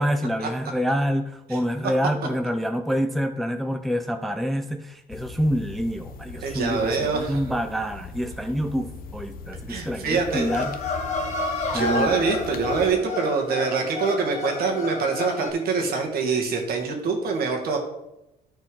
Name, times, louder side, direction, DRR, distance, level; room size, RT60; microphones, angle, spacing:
voice 1, 0.0-10.8 11.7-12.2, equal, ahead, 7 dB, 0.5 m, -27 dB
sound 1, 5.1-12.9, left 4 dB, 60° left, 0.7 m, -40 dB
voice 2, 6.4-7.4 9.7-10.5 11.7-17.8, right 4 dB, 65° right, 2 dB, 2.0 m, -25 dB
sound 2, 10.3-15.5, left 3 dB, 45° left, 1.7 m, -30 dB
13.0 x 4.5 x 3.8 m, 0.90 s
cardioid pair, 110°, 17 cm